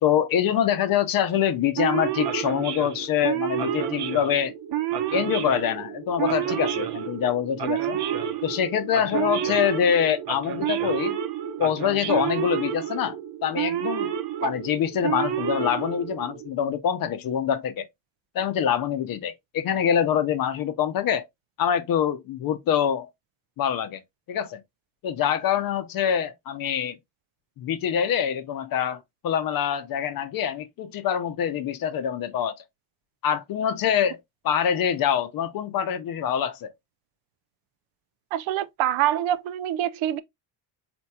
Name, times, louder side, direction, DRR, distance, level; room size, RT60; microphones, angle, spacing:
voice 1, 0.0-4.5 5.1-8.0 8.4-11.2 11.6-13.2 13.4-14.1 14.4-17.9 18.3-21.3 21.6-23.1 23.6-24.0 24.3-24.6 25.0-27.0 27.6-32.6 33.2-34.2 34.4-36.7, left 9 dB, 45° left, 0.6 m, -25 dB
Male speech man speaking / Siren, 1.8-16.5, right 10 dB, 55° right, 0.9 m, -29 dB
voice 2, 38.3-40.2, right 12 dB, 80° right, 0.6 m, -25 dB
4.3 x 4.3 x 2.3 m
cardioid pair, 165°, 47 cm